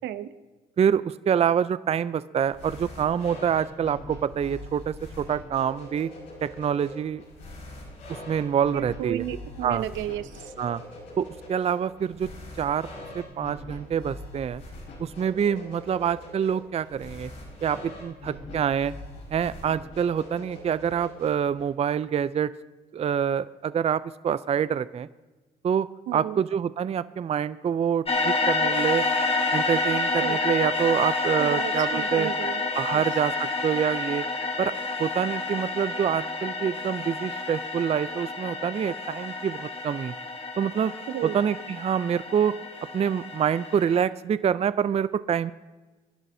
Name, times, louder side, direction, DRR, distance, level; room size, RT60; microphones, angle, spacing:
voice 1, 0.8-6.1 6.4-7.2 8.3-9.2 9.6-9.8 10.6-10.8 11.2-12.3 12.6-12.9 13.2-14.6 15.0-17.3 17.6-18.9 19.3-22.5 22.9-25.1 25.6-25.9 26.1-29.0 29.5-32.3 32.8-34.2 34.6-34.7 35.0-40.1 40.6-40.9 41.2-42.5 42.9-45.5, right 8 dB, 35° right, 16 dB, 0.4 m, -26 dB
sound 1, 2.4-21.6, left 1 dB, 85° left, 5.4 m, -43 dB
voice 2, 8.7-10.5 26.1-26.4 30.2-30.4 31.4-32.6 32.9-33.0 41.1-41.3, right 12 dB, 75° right, 13 dB, 0.7 m, -33 dB
sound 2, 28.1-44.0, left 3 dB, 30° left, 1.7 m, -29 dB
25.0 x 11.0 x 2.7 m, 1.2 s
supercardioid pair, 65°, 19 cm